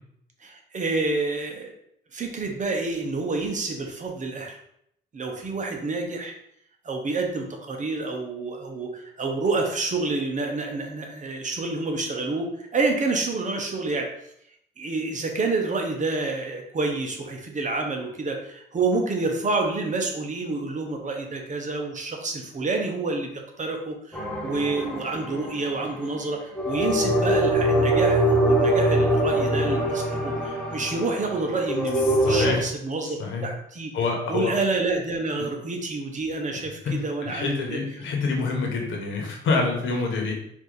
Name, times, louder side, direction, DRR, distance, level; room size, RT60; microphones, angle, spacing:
voice 1, 0.4-1.7 2.1-4.6 5.1-6.3 6.8-14.1 14.8-23.3 23.6-33.9 34.3-37.8, right 3 dB, 40° right, 2 dB, 1.0 m, -28 dB
sound 1, 24.1-25.8 26.6-32.5, right 1 dB, 5° left, 1.0 m, -23 dB
voice 2, 32.2-32.6 33.0-33.4 33.9-34.5 36.8-40.3, left 4 dB, 75° left, 1 dB, 1.3 m, -26 dB
4.7 x 2.8 x 4.0 m, 0.73 s
cardioid pair, 90°, 20 cm